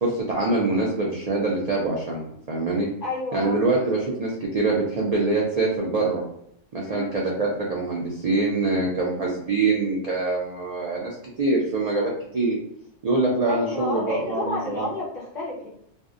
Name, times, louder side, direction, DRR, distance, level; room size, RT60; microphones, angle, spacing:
voice 1, 0.0-2.2 2.5-2.9 3.3-6.2 6.7-12.6 13.0-14.9, right 3 dB, 80° right, -3 dB, 0.3 m, -24 dB
voice 2, 3.0-3.6 6.8-7.1 13.5-15.7, left 2 dB, 50° left, -5 dB, 0.5 m, -30 dB
2.6 x 2.1 x 2.4 m, 0.72 s
omnidirectional pair, 1.3 m